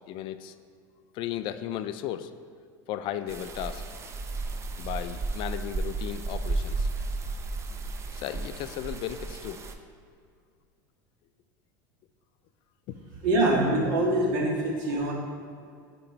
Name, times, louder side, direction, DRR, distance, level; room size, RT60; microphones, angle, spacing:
voice 1, 0.1-0.6 1.1-2.3 2.9-3.8 4.8-6.9 8.1-9.6 12.9-13.0, left 11 dB, 50° left, 11 dB, 0.3 m, -35 dB
sound 1, 3.3-9.7, right 3 dB, 25° right, 0.5 m, -33 dB
voice 2, 13.2-15.1, right 1 dB, 70° right, -2 dB, 1.6 m, -24 dB
8.4 x 3.0 x 4.5 m, 2.2 s
supercardioid pair, 110°, 11 cm